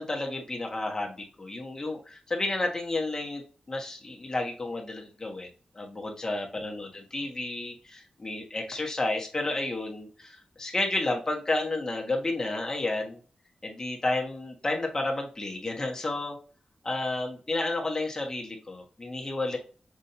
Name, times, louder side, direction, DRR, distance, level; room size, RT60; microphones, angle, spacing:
voice 1, 0.0-3.4 3.7-5.5 5.7-13.2 13.6-16.3 16.8-19.6, left 2 dB, 25° left, 1 dB, 1.3 m, -31 dB
6.2 x 2.7 x 2.8 m, 0.39 s
wide cardioid pair, 120°, 2 cm